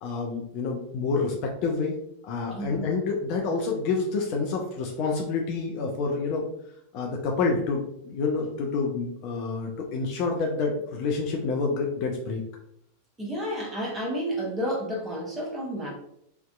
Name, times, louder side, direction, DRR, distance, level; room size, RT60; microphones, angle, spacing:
voice 1, 0.0-2.0 2.2-6.4 6.9-12.4, left 4 dB, 45° left, 1 dB, 0.4 m, -28 dB
voice 2, 2.5-2.9 13.2-15.9, equal, 10° right, -4 dB, 0.8 m, -31 dB
2.6 x 2.2 x 2.2 m, 0.75 s
figure-of-eight pair, 90°, 0 cm